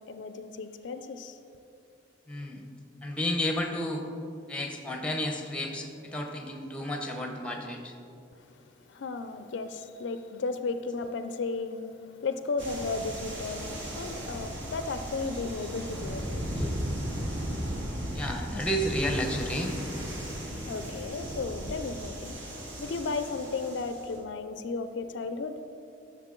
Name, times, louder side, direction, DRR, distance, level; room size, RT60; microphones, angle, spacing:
voice 1, 0.1-1.4 8.9-16.3 20.6-25.6, left 4 dB, 65° left, 0.4 m, -34 dB
voice 2, 2.3-2.6 3.0-4.0 4.5-7.9 16.6-16.8 18.1-19.8, left 1 dB, 5° left, 0.7 m, -31 dB
sound 1, 12.6-24.2, equal, 70° right, 1.8 m, -36 dB
11.0 x 6.7 x 3.7 m
head